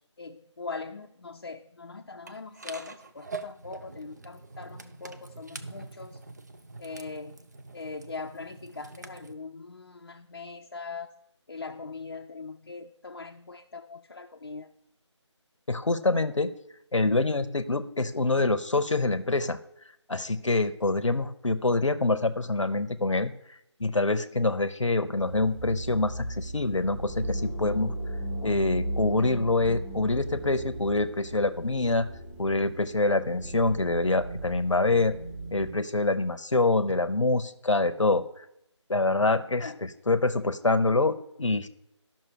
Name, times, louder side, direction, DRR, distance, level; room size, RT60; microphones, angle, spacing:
voice 1, 0.2-6.2 6.8-7.3 7.7-11.1 11.5-14.7 39.6-39.8, left 4 dB, 45° left, 3 dB, 0.5 m, -41 dB
sound 1, 2.3-9.3, right 3 dB, 35° right, 0.5 m, -44 dB
voice 2, 15.7-16.5 16.9-19.6 20.1-23.3 23.8-27.9 28.4-32.1 32.4-35.2 35.5-38.2 38.9-41.7, left 2 dB, 85° left, 11 dB, 0.8 m, -25 dB
sound 2, 25.2-35.7, right 1 dB, 20° right, 3.6 m, -36 dB
12.5 x 5.9 x 4.5 m, 0.80 s
figure-of-eight pair, 165°, 16 cm